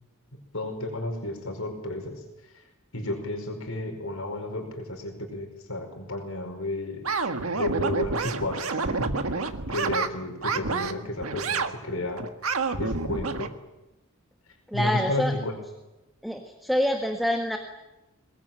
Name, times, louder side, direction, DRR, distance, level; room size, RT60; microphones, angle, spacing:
voice 1, 0.3-2.2 2.5-2.6 2.9-7.0 7.5-9.2 9.7-12.2 12.8-13.5 14.7-15.6, left 1 dB, 80° left, 3 dB, 5.2 m, -32 dB
sound 1, 7.0-10.1 10.4-10.9 11.2-11.7 12.2-13.5, right 4 dB, 85° right, 1.7 m, -28 dB
voice 2, 14.7-15.3 16.2-17.6, equal, ahead, 3 dB, 1.6 m, -26 dB
23.0 x 20.5 x 9.0 m, 1.0 s
head